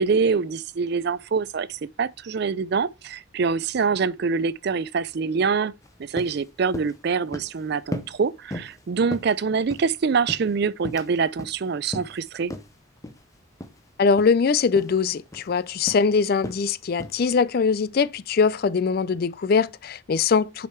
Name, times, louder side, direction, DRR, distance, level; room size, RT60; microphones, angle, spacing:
voice 1, 0.0-5.7 6.0-12.5, right 5 dB, 50° right, 0.4 m, -25 dB
sound 1, 5.8-5.9 6.2-6.4 6.7-7.0 7.3-7.6 7.9-8.2 8.5-8.8 9.1-9.9 10.3-11.1 11.4-11.6 11.9-12.2 12.5-12.7 13.0-13.2 13.6-13.8 14.1-14.3 14.8-15.0 15.3-15.5 15.9-16.1 16.4-16.7 17.0-17.2, left 1 dB, 15° left, 0.7 m, -35 dB
voice 2, 14.0-20.7, left 5 dB, 45° left, 0.3 m, -22 dB
6.4 x 5.1 x 4.4 m
head